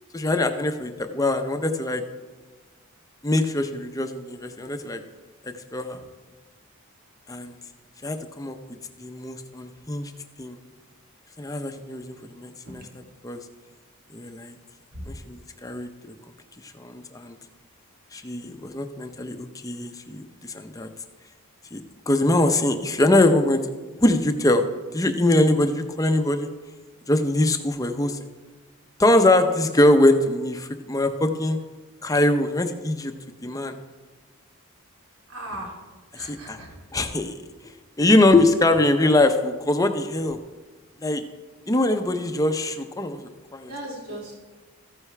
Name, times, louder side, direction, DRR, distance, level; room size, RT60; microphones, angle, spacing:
voice 1, 0.1-2.0 3.2-5.0 5.4-6.0 7.3-7.6 8.0-8.6 9.0-10.1 10.4-10.6 11.4-12.9 13.2-13.4 14.1-14.6 15.1-15.9 16.7-17.4 18.1-20.9 21.7-23.6 24.0-24.7 24.9-26.5 27.1-28.2 29.0-31.6 32.0-33.1 33.4-33.8 36.1-36.6 36.9-37.3 38.0-40.4 41.0-41.2 41.7-43.7, left 1 dB, 15° left, 7 dB, 0.6 m, -22 dB
voice 2, 35.3-35.7 36.1-36.7 43.6-44.4, right 1 dB, 75° right, -2 dB, 2.9 m, -37 dB
14.5 x 9.5 x 3.3 m, 1.3 s
head